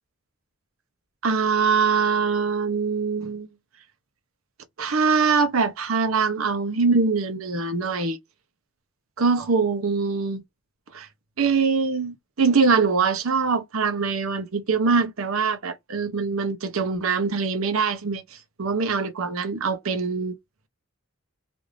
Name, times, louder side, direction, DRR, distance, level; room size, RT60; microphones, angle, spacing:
voice 1, 1.2-3.5 4.8-8.2 9.2-10.4 10.9-11.1 11.4-18.2 18.6-20.3, right 5 dB, 80° right, 0.7 m, -23 dB
2.6 x 2.5 x 3.1 m
head